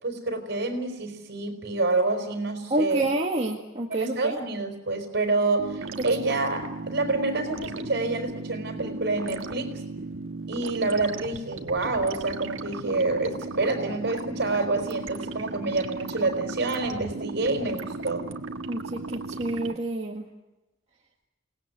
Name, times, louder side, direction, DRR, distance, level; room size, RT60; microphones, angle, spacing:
voice 1, 0.0-3.1 4.0-9.7 10.5-18.3, right 3 dB, 55° right, 5 dB, 4.8 m, -27 dB
voice 2, 2.7-4.4 18.7-19.0 19.4-20.3, right 2 dB, 30° right, -1 dB, 1.9 m, -27 dB
sound 1, 5.6-19.8, right 3 dB, 80° right, 1.5 m, -36 dB
28.5 x 19.0 x 8.4 m, 1.0 s
head